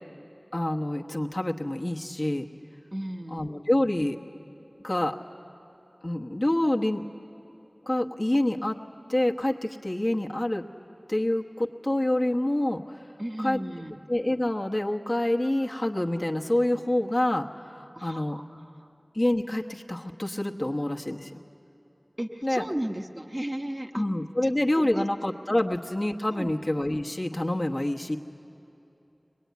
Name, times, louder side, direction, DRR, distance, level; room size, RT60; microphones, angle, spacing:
voice 1, 0.5-2.4 3.3-4.2 4.8-5.1 6.0-7.0 7.9-8.8 9.1-10.6 11.1-13.0 13.4-13.6 14.1-18.4 19.1-21.4 22.4-22.6 23.9-28.2, left 1 dB, 40° left, 0 dB, 1.1 m, -27 dB
voice 2, 2.9-3.5 13.2-14.0 17.9-18.9 22.2-24.0 24.7-25.1 25.5-25.7 26.3-26.5, right 1 dB, 30° right, 4 dB, 1.0 m, -35 dB
23.0 x 20.5 x 9.4 m, 2.9 s
wide cardioid pair, 45°, 0 cm